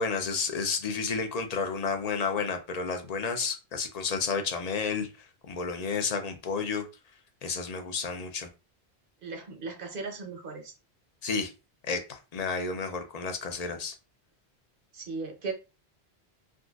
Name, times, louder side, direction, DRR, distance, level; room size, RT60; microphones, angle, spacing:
voice 1, 0.0-5.1 5.5-6.8 7.4-8.5 11.2-11.5 11.9-13.9, left 5 dB, 50° left, 0.6 m, -31 dB
voice 2, 9.2-10.7 14.9-15.5, right 4 dB, 55° right, 0.9 m, -37 dB
3.7 x 2.4 x 2.3 m
omnidirectional pair, 1.1 m